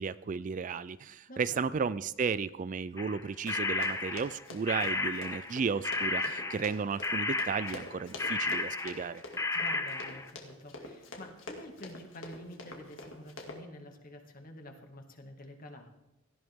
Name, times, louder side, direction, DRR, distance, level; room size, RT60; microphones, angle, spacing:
voice 1, 0.0-9.2, right 5 dB, 40° right, 16 dB, 0.4 m, -34 dB
voice 2, 1.3-1.7 9.5-15.9, left 1 dB, 45° left, 4 dB, 2.1 m, -48 dB
sound 1, 3.0-5.6 5.8-9.1 9.4-10.3, left 3 dB, 15° left, 0.8 m, -33 dB
Run, 3.5-13.6, left 2 dB, 70° left, 2.4 m, -46 dB
17.5 x 14.0 x 3.7 m, 0.95 s
head